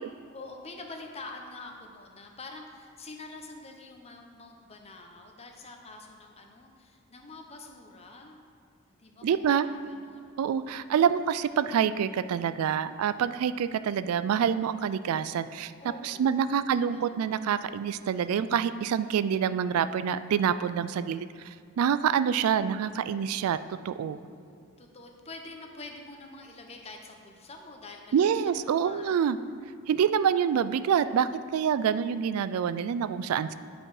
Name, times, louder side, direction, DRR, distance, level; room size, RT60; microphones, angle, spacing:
voice 1, 0.3-8.4 9.0-10.3 10.6-11.2 15.8-16.3 16.6-17.2 24.1-29.2 30.1-30.3 31.8-32.3, left 2 dB, 30° left, 2 dB, 0.8 m, -46 dB
voice 2, 9.2-9.7 10.4-15.7 16.0-24.2 28.1-29.4 29.9-33.5, right 8 dB, 90° right, 14 dB, 0.3 m, -26 dB
9.5 x 5.1 x 4.8 m, 2.2 s
head